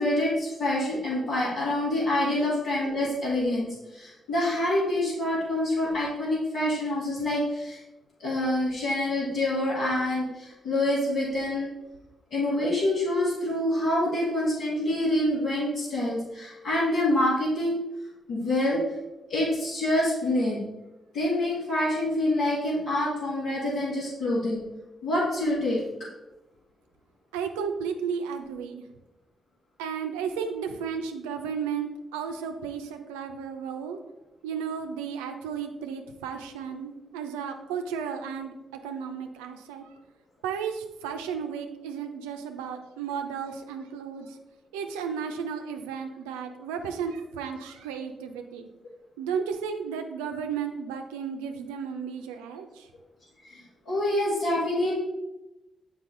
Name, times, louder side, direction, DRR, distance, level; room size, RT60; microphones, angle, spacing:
voice 1, 0.0-7.8 8.2-11.7 12.3-17.8 18.3-18.8 19.3-20.7 21.1-24.6 25.0-25.8 53.5-53.6 53.9-55.0, left 1 dB, 80° left, -11 dB, 1.9 m, -26 dB
voice 2, 27.3-28.9 29.8-34.0 34.4-38.5 38.8-39.9 40.4-44.4 44.7-48.7 49.2-52.9, right 6 dB, 90° right, 5 dB, 0.5 m, -34 dB
6.7 x 4.6 x 3.8 m, 0.98 s
hypercardioid pair, 40°, 0 cm